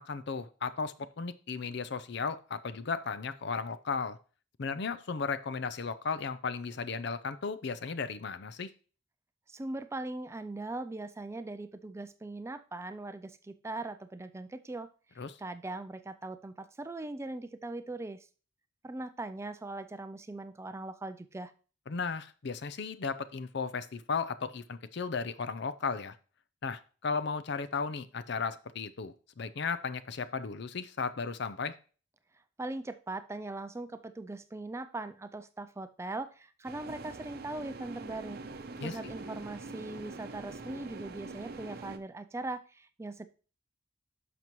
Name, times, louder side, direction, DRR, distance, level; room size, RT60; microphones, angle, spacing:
voice 1, 0.0-4.2 4.6-8.7 15.2-15.4 21.9-26.1 26.6-31.7 38.8-39.0, left 5 dB, 60° left, 13 dB, 0.6 m, -35 dB
voice 2, 9.5-14.9 15.2-18.3 18.8-21.5 32.6-38.4 38.8-43.3, right 2 dB, 15° right, 11 dB, 0.3 m, -40 dB
sound 1, 36.6-42.0, right 3 dB, 50° right, 0.7 m, -44 dB
11.0 x 6.0 x 3.1 m, 0.39 s
head